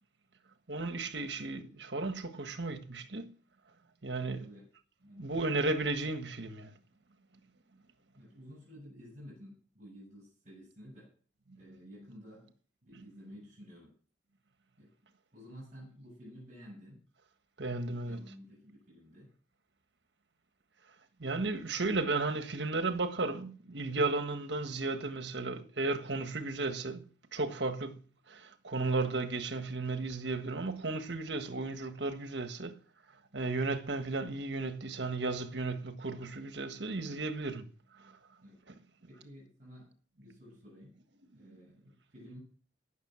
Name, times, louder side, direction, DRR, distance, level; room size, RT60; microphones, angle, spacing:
voice 1, 0.7-3.3 4.0-4.4 5.2-6.7 12.9-13.0 17.6-18.2 21.2-27.1 27.3-32.8 33.3-37.7 38.0-38.2 38.7-38.8, right 3 dB, 65° right, 1.5 m, -34 dB
voice 2, 4.4-4.7 5.0-5.3 8.1-11.1 11.5-12.5 12.8-13.9 14.8-14.9 15.3-17.0 17.8-19.3 38.4-38.6 39.0-40.9 41.3-42.4, equal, 40° right, 7.7 m, -52 dB
17.5 x 6.5 x 7.6 m
head